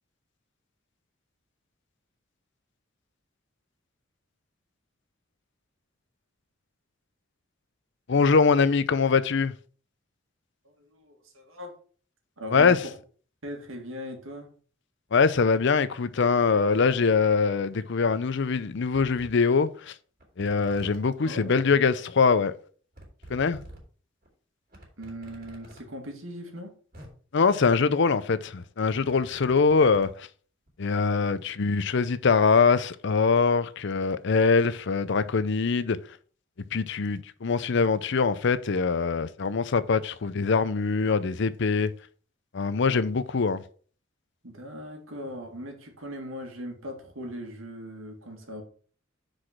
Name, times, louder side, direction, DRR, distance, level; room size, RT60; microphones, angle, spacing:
voice 1, 8.1-9.5 12.5-12.8 15.1-19.9 20.4-22.5 23.3-23.6 27.3-30.3 30.8-36.0 36.7-41.9 42.5-43.6, left 5 dB, 60° left, 0.6 m, -23 dB
voice 2, 10.8-11.7 12.4-12.9 13.4-14.5 21.2-21.7 25.0-26.7 44.4-48.6, equal, 85° right, 2.3 m, -39 dB
sound 1, 16.8-16.9 17.9-18.0 18.5-18.6 18.9-19.3 20.2-21.0 22.1-22.2 22.4-22.5 22.9-23.8 24.2-24.3 24.7-25.8 26.6-26.7 26.9-27.1 28.4-30.1 30.7-30.8, right 1 dB, 45° right, 2.8 m, -48 dB
6.2 x 4.9 x 5.9 m
head